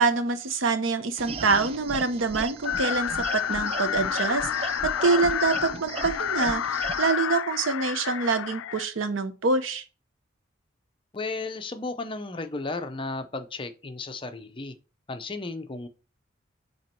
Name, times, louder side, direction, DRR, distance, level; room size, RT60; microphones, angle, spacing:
voice 1, 0.0-9.8, right 4 dB, 80° right, 0.7 m, -26 dB
sound 1, 1.2-7.1, right 4 dB, 30° right, 0.3 m, -36 dB
sound 2, 2.6-8.9, left 9 dB, 85° left, 0.3 m, -29 dB
voice 2, 11.1-14.8 15.1-15.9, left 3 dB, 25° left, 0.6 m, -34 dB
7.4 x 3.0 x 4.3 m
head